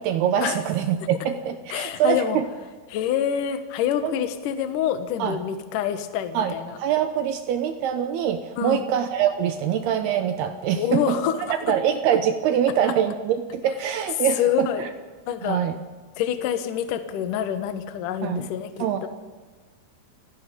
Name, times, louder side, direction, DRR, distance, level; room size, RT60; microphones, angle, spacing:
voice 1, 0.0-2.5 4.0-4.2 5.2-5.4 6.3-14.9 15.4-15.7 18.2-18.5 18.8-19.1, right 9 dB, 80° right, 9 dB, 2.4 m, -24 dB
voice 2, 1.7-2.4 2.9-6.8 8.6-8.8 10.8-11.4 14.4-14.8 15.3-15.6 16.2-19.1, left 10 dB, 70° left, 9 dB, 2.1 m, -26 dB
29.0 x 17.0 x 5.4 m, 1.4 s
omnidirectional pair, 5.7 m